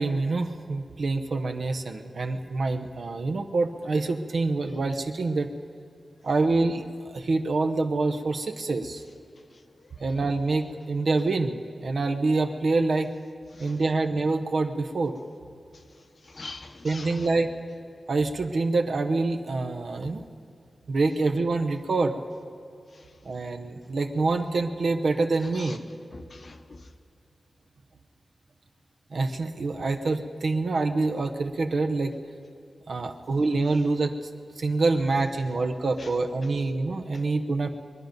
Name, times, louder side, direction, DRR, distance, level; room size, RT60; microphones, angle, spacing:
voice 1, 0.0-5.5 6.2-9.0 10.0-13.1 13.6-15.2 16.8-17.5 18.1-20.3 20.9-22.2 23.2-25.8 29.1-32.1 32.9-34.1 34.6-37.7, right 3 dB, 60° right, 5 dB, 0.9 m, -26 dB
voice 2, 16.3-17.3 25.5-25.8 26.1-26.8 36.0-36.1, left 3 dB, 40° left, 7 dB, 0.9 m, -42 dB
23.5 x 10.5 x 5.3 m, 2.5 s
wide cardioid pair, 145°, 0 cm